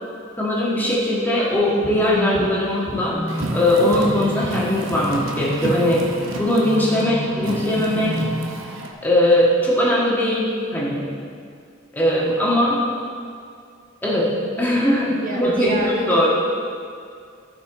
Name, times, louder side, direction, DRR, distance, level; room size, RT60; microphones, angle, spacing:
voice 1, 0.4-3.2 3.5-6.0 6.4-8.2 9.0-11.1 11.9-12.8 14.0-15.8 16.1-16.3, left 1 dB, 10° left, -6 dB, 1.6 m, -20 dB
sound 1, 1.5-8.4, equal, 5° right, 2.4 m, -31 dB
Car, 3.3-8.9, right 1 dB, 85° right, 0.9 m, -31 dB
voice 2, 15.1-16.2, right 2 dB, 45° right, -2 dB, 1.1 m, -28 dB
14.0 x 5.6 x 3.9 m, 2.3 s
head